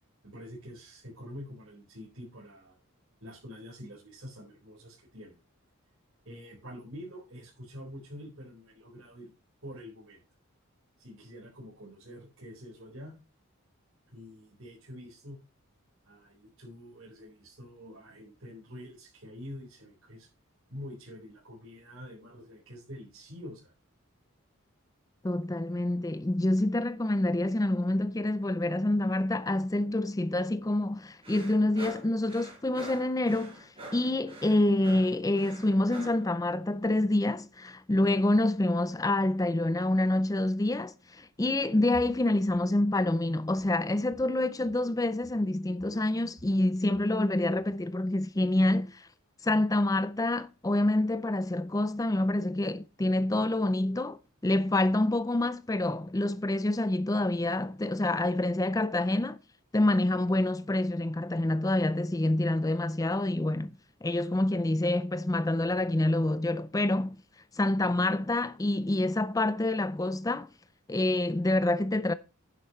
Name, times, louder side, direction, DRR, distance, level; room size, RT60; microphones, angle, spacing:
voice 1, 0.2-2.8 3.2-5.4 6.2-9.3 9.6-10.2 11.0-13.2 14.1-15.4 16.0-20.3 20.7-23.7, equal, 60° right, 4.7 m, -46 dB
voice 2, 25.2-49.1 49.4-59.4 59.7-63.7 64.0-67.2 67.5-70.5 70.9-72.1, left 1 dB, 15° left, 0.4 m, -27 dB
sound 1, 31.2-36.3, right 1 dB, 25° right, 5.2 m, -46 dB
Walk footsteps, 41.4-41.7 41.9-45.0 45.2-45.5 45.8-47.2 47.5-47.9, equal, 85° right, 5.3 m, -54 dB
11.0 x 10.0 x 3.2 m
head